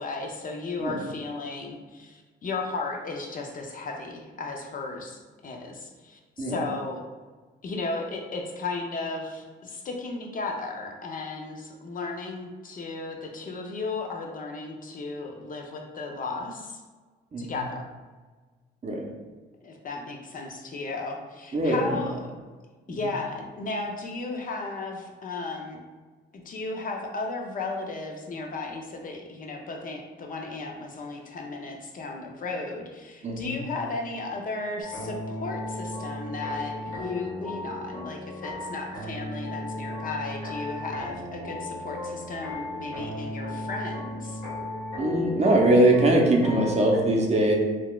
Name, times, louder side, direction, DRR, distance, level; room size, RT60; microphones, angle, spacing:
voice 1, 0.0-7.0 7.6-16.8 17.4-17.9 19.6-22.2 22.9-25.8 26.3-44.4, left 3 dB, 45° left, 1 dB, 0.5 m, -35 dB
voice 2, 21.5-22.0 22.9-23.0 33.2-33.6 45.0-47.6, right 1 dB, 35° right, 0 dB, 0.6 m, -22 dB
sound 1, 34.8-47.0, left 2 dB, 85° left, 1.2 m, -35 dB
3.9 x 2.3 x 2.3 m, 1.3 s
cardioid pair, 90°, 20 cm